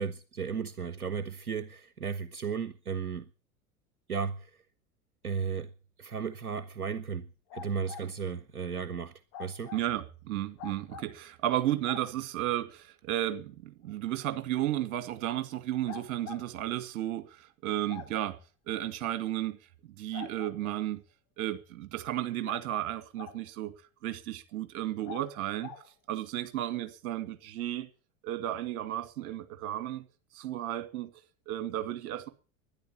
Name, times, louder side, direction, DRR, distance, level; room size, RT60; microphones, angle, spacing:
voice 1, 0.0-3.3 4.1-4.6 5.2-5.7 6.0-9.7, right 6 dB, 85° right, 0.8 m, -35 dB
sound 1, 7.5-8.1 9.3-9.8 10.6-11.1 11.8-12.1 13.8-13.9 15.8-16.4 17.9-18.1 20.1-20.8 22.4-23.4 25.0-25.2 25.6-25.8, left 7 dB, 45° left, 4.5 m, -44 dB
voice 2, 9.7-18.4 18.7-19.6 19.8-21.0 21.4-23.7 24.0-25.7 26.1-27.9 28.2-30.0 30.3-31.1 31.5-32.3, right 13 dB, 50° right, 2.2 m, -33 dB
12.0 x 10.5 x 10.0 m
figure-of-eight pair, 80°, 43 cm